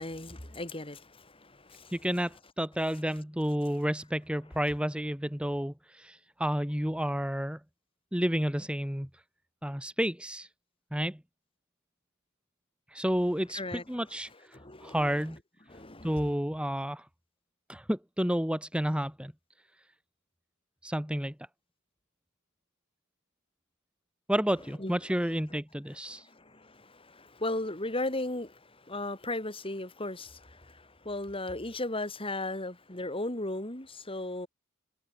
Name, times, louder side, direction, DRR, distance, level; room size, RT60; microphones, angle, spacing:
voice 1, 0.0-2.0 13.5-13.8 14.5-15.2 15.7-16.3 24.8-25.0 25.2-25.4 26.1-34.5, left 2 dB, 25° left, 4.7 m, -36 dB
voice 2, 1.9-7.6 8.1-9.1 9.6-10.5 10.9-11.2 12.9-15.4 16.0-17.1 17.7-19.3 20.8-21.3 24.3-26.3, equal, 5° right, 1.8 m, -31 dB
head